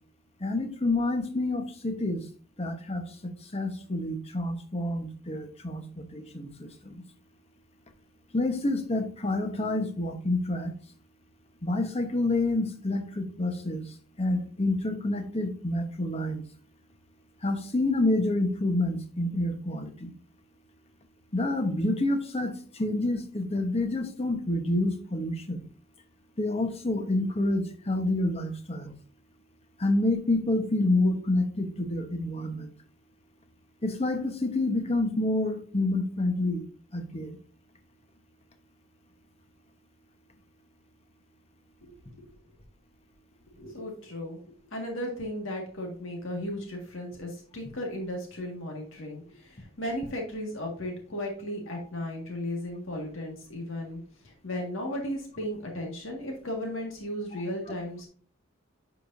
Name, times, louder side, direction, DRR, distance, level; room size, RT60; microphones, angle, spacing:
voice 1, 0.4-2.2 2.6-7.0 8.3-10.7 11.6-16.4 17.4-20.1 21.3-25.7 26.4-28.9 29.8-32.7 33.8-36.7 36.9-37.4 51.7-51.8, left 2 dB, 30° left, 6 dB, 1.0 m, -28 dB
voice 2, 43.6-44.4 44.7-54.0 54.2-58.1, left 1 dB, 70° left, 1 dB, 1.8 m, -35 dB
10.0 x 4.9 x 2.6 m, 0.44 s
head